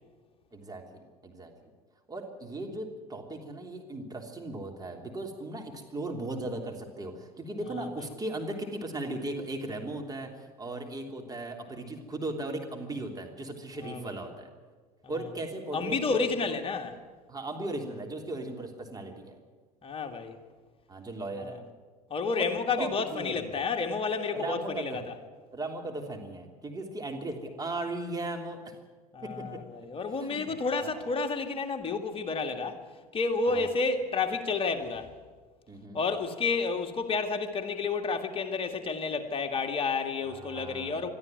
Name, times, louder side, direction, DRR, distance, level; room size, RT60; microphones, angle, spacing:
voice 1, 0.5-1.5 2.1-14.5 15.1-16.3 17.3-19.4 20.9-21.6 22.4-22.5 22.8-23.6 24.3-25.0 25.5-28.7 29.2-29.6 30.2-30.5 33.5-33.6 35.7-36.0 40.2-41.1, right 2 dB, 20° right, 3 dB, 3.1 m, -37 dB
voice 2, 13.8-14.2 15.7-17.0 19.8-20.4 21.4-21.5 22.1-25.1 29.1-32.8 33.1-35.1 35.9-41.1, left 4 dB, 25° left, 5 dB, 2.2 m, -30 dB
22.0 x 13.5 x 9.1 m, 1.4 s
figure-of-eight pair, 70°, 20 cm